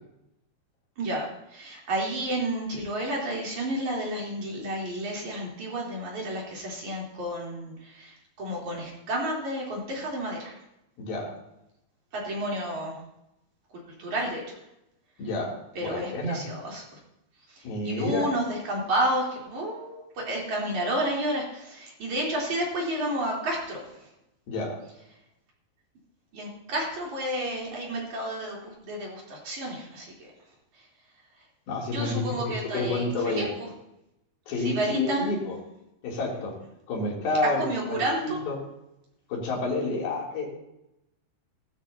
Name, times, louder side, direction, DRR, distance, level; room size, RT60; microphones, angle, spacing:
voice 1, 1.0-10.5 12.1-13.0 13.7-14.4 15.7-16.8 17.8-23.8 26.3-30.3 31.9-33.5 34.6-35.3 37.6-38.4, right 1 dB, 45° right, -3 dB, 4.7 m, -31 dB
voice 2, 11.0-11.3 15.2-16.4 17.6-18.3 24.5-24.8 31.7-33.5 34.5-35.6 36.0-36.5 36.9-38.6 39.3-40.6, left 2 dB, 60° left, -2 dB, 4.9 m, -29 dB
15.5 x 14.0 x 2.9 m, 0.86 s
omnidirectional pair, 5.0 m